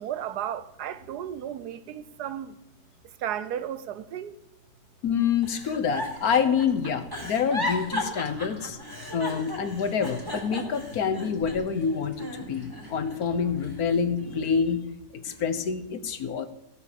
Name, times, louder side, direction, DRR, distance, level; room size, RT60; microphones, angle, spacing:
voice 1, 0.0-2.6 3.2-4.4, right 10 dB, 85° right, 1.3 m, -34 dB
voice 2, 5.0-8.8 9.1-14.8 15.1-16.5, left 6 dB, 70° left, 1.5 m, -27 dB
Giggle, 5.4-11.8 12.2-13.2 13.6-14.7 15.2-15.6, left 1 dB, 15° right, 2.6 m, -35 dB
sound 1, 5.7-14.7, left 2 dB, 20° left, 2.6 m, -48 dB
16.0 x 6.8 x 6.9 m
omnidirectional pair, 1.7 m